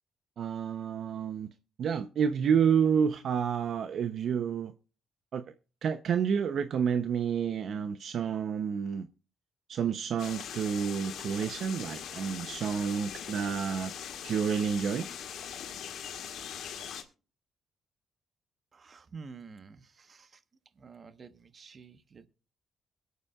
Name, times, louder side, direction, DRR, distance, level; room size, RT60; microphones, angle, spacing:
voice 1, 0.4-1.5 1.8-4.7 5.3-5.4 5.8-9.1 9.7-13.9 14.2-15.1, right 7 dB, 65° right, 0.7 m, -29 dB
sound 1, 10.2-17.0, left 8 dB, 75° left, 1.7 m, -41 dB
voice 2, 18.7-20.4 20.8-22.3, right 5 dB, 40° right, 1.1 m, -49 dB
22.0 x 8.3 x 2.3 m
cardioid pair, 90°, 0 cm